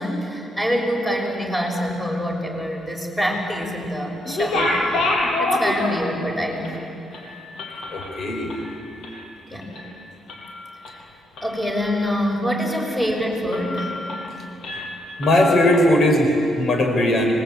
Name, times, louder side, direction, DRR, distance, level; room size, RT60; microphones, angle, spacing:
voice 1, 0.0-6.8 9.5-9.7 11.4-14.0, equal, 5° left, 1 dB, 6.5 m, -25 dB
sound 1, 4.3-6.3 6.6-6.8 7.1-9.3 9.6-9.9 10.3-10.9 11.4-12.1 12.5-12.6 13.0-13.2 13.5-14.3 14.6-15.8, left 2 dB, 70° left, 6.7 m, -27 dB
voice 2, 7.9-8.5 15.2-17.3, left 1 dB, 55° left, 3 dB, 5.2 m, -18 dB
29.0 x 22.0 x 8.9 m, 2.7 s
cardioid pair, 90°, 0 cm